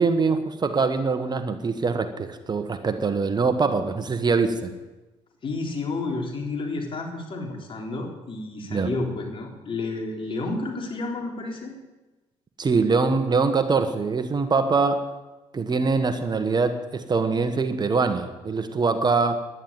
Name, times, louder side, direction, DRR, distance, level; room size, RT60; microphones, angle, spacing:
voice 1, 0.0-4.7 8.7-8.9 12.6-15.1 15.5-19.4, right 4 dB, 35° right, 8 dB, 1.4 m, -23 dB
voice 2, 5.4-11.7, left 3 dB, 45° left, 1 dB, 3.8 m, -31 dB
11.0 x 11.0 x 9.0 m, 1.1 s
supercardioid pair, 70°, 13 cm